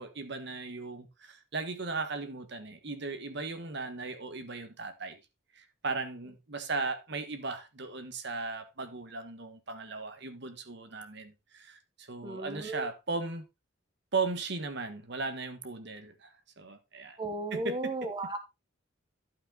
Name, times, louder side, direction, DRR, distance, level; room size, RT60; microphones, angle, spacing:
voice 1, 0.0-5.2 5.5-13.4 14.1-17.2 17.5-18.1, right 3 dB, 60° right, 1.4 m, -37 dB
voice 2, 12.2-12.8 17.2-18.4, right 2 dB, 20° right, 1.1 m, -35 dB
12.0 x 5.6 x 3.8 m
head